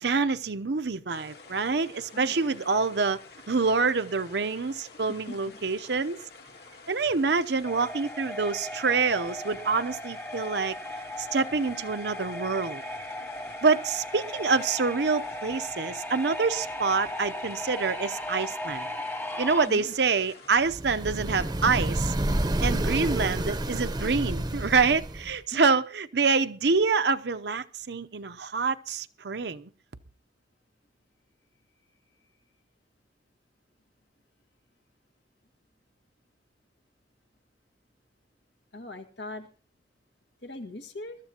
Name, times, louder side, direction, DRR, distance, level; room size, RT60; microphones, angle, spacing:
voice 1, 0.0-3.2 3.5-6.2 6.9-10.7 11.2-12.8 13.6-18.9 19.4-22.1 22.6-29.7, right 4 dB, 70° right, 0.8 m, -26 dB
sound 1, 1.1-20.7, left 3 dB, 60° left, 2.4 m, -50 dB
voice 2, 2.1-2.5 5.3-5.6 19.7-19.9 25.5-25.6 38.7-39.5 40.4-41.2, left 2 dB, 75° left, 1.8 m, -40 dB
sound 2, 7.6-19.7, left 1 dB, 10° left, 0.7 m, -37 dB
sound 3, 20.7-25.4, right 1 dB, 20° right, 0.8 m, -29 dB
22.5 x 13.5 x 2.9 m
head